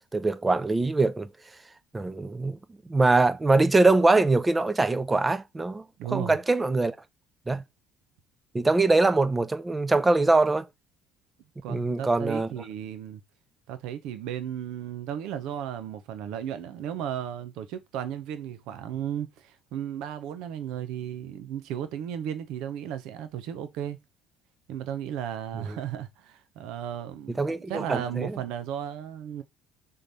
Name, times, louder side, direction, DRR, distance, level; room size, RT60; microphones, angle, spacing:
voice 1, 0.1-1.3 1.9-2.6 2.9-5.8 6.1-7.0 7.5-7.6 8.5-10.7 11.7-12.5 27.4-28.4, right 3 dB, 20° right, 0.6 m, -23 dB
voice 2, 6.0-6.4 11.6-13.2 13.7-24.0 24.7-29.4, right 10 dB, 70° right, 0.7 m, -35 dB
3.8 x 3.3 x 4.0 m
hypercardioid pair, 70°, 0 cm